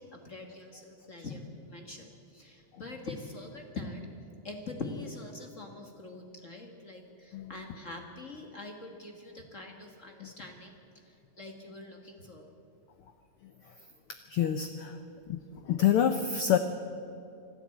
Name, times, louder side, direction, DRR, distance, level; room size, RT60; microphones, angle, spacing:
voice 1, 0.0-4.0 4.4-12.5, left 2 dB, 40° left, 3 dB, 1.2 m, -44 dB
voice 2, 7.3-7.7 10.2-10.3 14.3-15.0 15.3-15.4 15.6-16.6, left 9 dB, 80° left, 8 dB, 1.2 m, -27 dB
25.5 x 12.0 x 8.5 m, 2.6 s
omnidirectional pair, 3.4 m